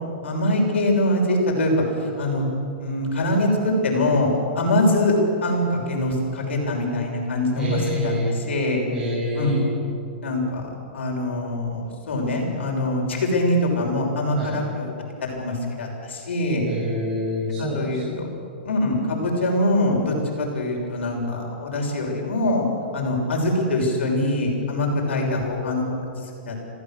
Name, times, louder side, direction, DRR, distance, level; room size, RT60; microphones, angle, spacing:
voice 1, 0.2-2.5 2.8-4.3 4.5-5.2 5.4-8.8 9.3-9.5 10.2-14.9 15.2-16.6 17.6-18.3 18.6-22.6 22.9-25.8 26.5-26.6, left 1 dB, 85° left, 0 dB, 6.5 m, -23 dB
voice 2, 7.6-8.3 8.9-9.5 14.4-14.6 16.6-18.3, left 1 dB, 15° right, -8 dB, 7.6 m, -27 dB
27.5 x 14.5 x 7.8 m, 2.6 s
hypercardioid pair, 145°, 6 cm